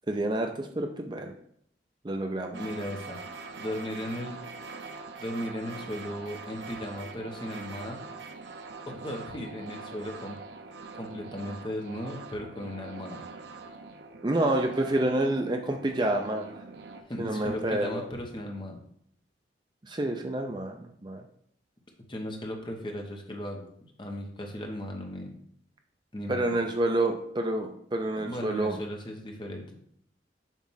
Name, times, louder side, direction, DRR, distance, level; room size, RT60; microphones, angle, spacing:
voice 1, 0.1-1.3 2.0-2.6 14.2-16.5 17.2-18.0 19.8-21.2 26.3-28.8, right 1 dB, 25° right, 4 dB, 0.5 m, -28 dB
voice 2, 2.5-3.2 3.6-4.4 5.2-8.0 8.9-10.4 11.0-13.2 17.1-18.8 22.1-23.7 24.0-25.3 26.1-26.6 28.2-29.6, left 1 dB, 25° left, 2 dB, 0.9 m, -36 dB
sound 1, 2.5-17.0, right 4 dB, 75° right, 0.6 m, -43 dB
7.2 x 2.4 x 5.6 m, 0.67 s
head